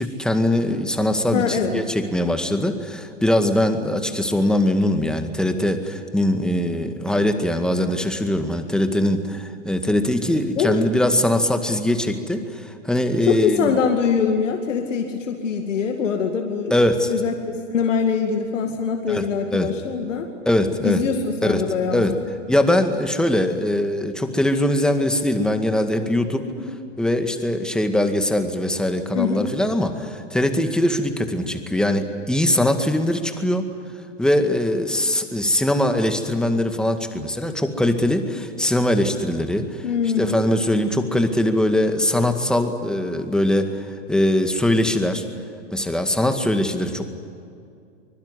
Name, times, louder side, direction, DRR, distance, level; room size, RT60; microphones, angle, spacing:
voice 1, 0.0-13.8 16.7-17.1 19.1-19.2 19.5-19.7 20.5-21.0 21.4-22.1 22.5-26.4 27.0-33.7 34.2-39.8 40.2-43.8 44.1-45.2 45.7-47.1, left 1 dB, ahead, 6 dB, 2.0 m, -21 dB
voice 2, 1.3-1.8 10.6-10.9 13.2-16.7 17.1-20.3 20.8-22.0 26.6-26.8 29.1-29.4 39.8-40.4, left 6 dB, 75° left, 4 dB, 2.4 m, -23 dB
24.5 x 21.5 x 9.8 m, 2.4 s
hypercardioid pair, 120°, 37 cm